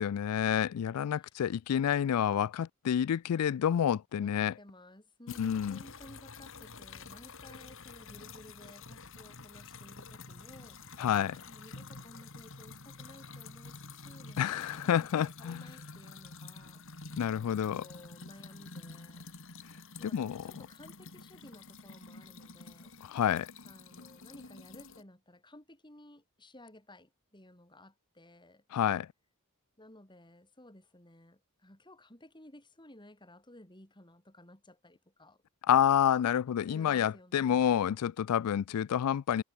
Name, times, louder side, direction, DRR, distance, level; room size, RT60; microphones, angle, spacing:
voice 1, 0.0-4.5 5.4-5.8 11.0-11.4 14.4-15.7 17.2-17.8 20.0-20.4 23.0-23.5 28.7-29.1 35.7-39.4, left 9 dB, 85° left, 0.3 m, -29 dB
voice 2, 4.2-17.2 17.5-19.3 20.0-23.0 23.7-28.6 29.8-35.4 36.7-37.6, left 1 dB, 20° left, 5.0 m, -55 dB
sound 1, 5.3-25.0, left 3 dB, 60° left, 3.7 m, -49 dB
head